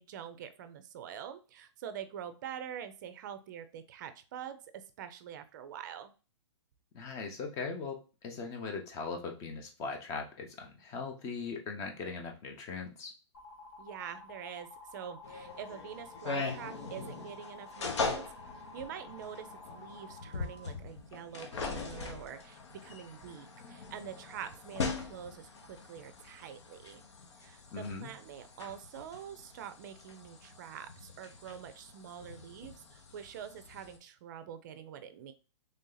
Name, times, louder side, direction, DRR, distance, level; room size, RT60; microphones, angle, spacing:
voice 1, 0.0-6.1 13.8-18.3 18.7-27.0 27.4-35.3, right 9 dB, 40° right, 11 dB, 0.5 m, -45 dB
voice 2, 6.9-13.1 27.7-28.1, left 4 dB, 20° left, 3 dB, 0.7 m, -40 dB
sound 1, 13.3-20.7, left 3 dB, 45° left, 1.0 m, -51 dB
sound 2, 15.2-34.0, left 4 dB, 70° left, 1.0 m, -41 dB
3.3 x 2.7 x 3.8 m, 0.33 s
hypercardioid pair, 150°, 15 cm